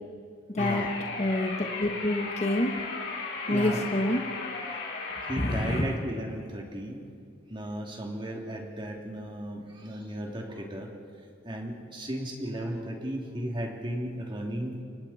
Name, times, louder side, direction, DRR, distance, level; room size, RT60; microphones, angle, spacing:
sound 1, 0.6-5.8, left 4 dB, 70° left, 5.5 m, -36 dB
voice 1, 0.6-0.9 3.5-3.9 5.2-7.0 7.5-10.9 11.4-14.8, right 1 dB, 25° right, 0 dB, 3.1 m, -35 dB
voice 2, 1.2-2.7 3.5-4.2 5.4-5.8, left 1 dB, 35° left, 2 dB, 1.6 m, -27 dB
29.0 x 24.0 x 4.4 m, 2.3 s
head